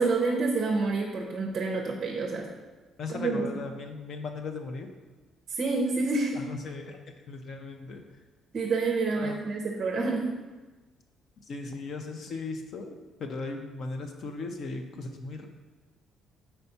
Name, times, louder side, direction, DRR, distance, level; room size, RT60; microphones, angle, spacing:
voice 1, 0.0-2.5 3.1-3.4 5.6-6.4 8.5-10.3, right 3 dB, 35° right, 0 dB, 0.6 m, -28 dB
voice 2, 3.0-4.9 6.3-7.0 7.3-8.0 9.2-9.4 11.5-15.5, left 3 dB, 45° left, 4 dB, 0.5 m, -37 dB
4.4 x 4.1 x 5.6 m, 1.3 s
cardioid pair, 175°, 0 cm